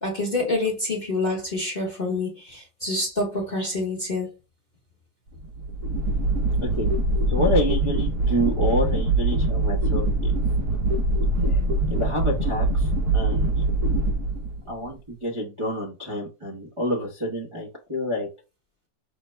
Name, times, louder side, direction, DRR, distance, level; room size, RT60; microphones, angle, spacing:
voice 1, 0.0-4.3, left 2 dB, 30° left, 0.9 m, -27 dB
sound 1, 5.4-14.9, right 2 dB, 60° right, 0.9 m, -23 dB
voice 2, 7.3-10.4 11.4-11.6 11.9-13.5 14.6-18.3, equal, 25° right, 0.6 m, -28 dB
5.8 x 2.1 x 3.2 m
omnidirectional pair, 2.0 m